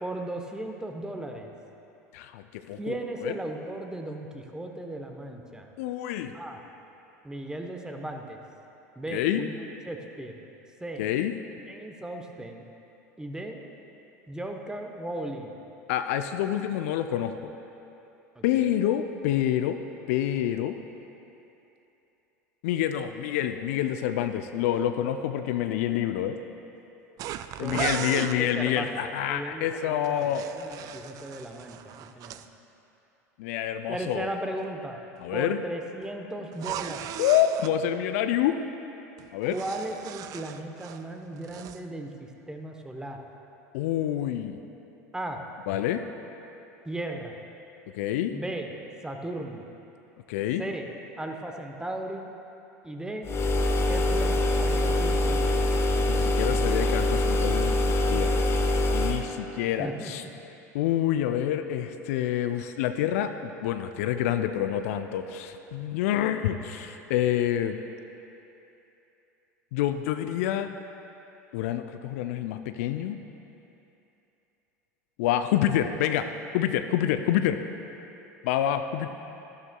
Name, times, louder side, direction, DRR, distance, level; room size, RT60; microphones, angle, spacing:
voice 1, 0.0-1.5 2.8-5.7 6.3-6.6 7.2-8.4 9.0-9.6 9.8-10.4 10.8-11.0 11.7-12.6 13.2-13.6 14.3-15.5 18.3-18.7 27.6-29.0 29.3-32.4 33.9-35.0 35.3-37.1 39.5-42.1 42.5-43.2 45.1-45.4 46.8-47.4 48.3-48.7 49.0-49.6 50.6-50.9 51.2-52.3 52.8-53.3 53.9-55.6 59.8-60.3, right 1 dB, 10° right, 3 dB, 0.9 m, -36 dB
voice 2, 2.1-3.0 3.2-3.3 5.8-6.3 9.1-9.4 11.0-11.3 15.9-17.5 18.4-19.8 20.1-20.8 22.6-26.3 27.6-30.4 33.4-34.3 35.2-35.6 37.2-38.6 39.3-39.6 43.7-44.6 45.7-46.0 47.9-48.3 50.3-50.6 56.1-58.5 58.9-60.2 60.7-67.8 69.7-70.7 71.5-73.2 75.2-76.3 76.5-77.6 78.4-79.1, left 11 dB, 60° left, 8 dB, 0.4 m, -27 dB
sound 1, 27.2-28.4 30.0-32.5 36.5-37.7 39.2-41.1 41.4-41.8, right 10 dB, 45° right, 0.4 m, -37 dB
sound 2, 53.3-59.3, left 1 dB, 30° left, 0.9 m, -24 dB
13.5 x 11.5 x 2.3 m, 2.9 s
figure-of-eight pair, 75°, 9 cm